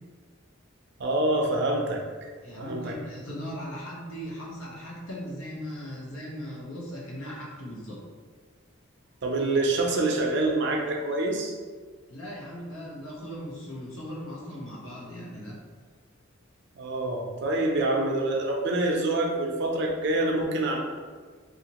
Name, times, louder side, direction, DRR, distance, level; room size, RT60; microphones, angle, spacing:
voice 1, 1.0-2.0 2.6-2.9 9.2-11.5 16.7-20.8, right 2 dB, 55° right, 0 dB, 0.5 m, -26 dB
voice 2, 2.4-8.0 12.1-15.6, equal, 90° left, -4 dB, 0.9 m, -38 dB
2.9 x 2.4 x 2.9 m, 1.6 s
head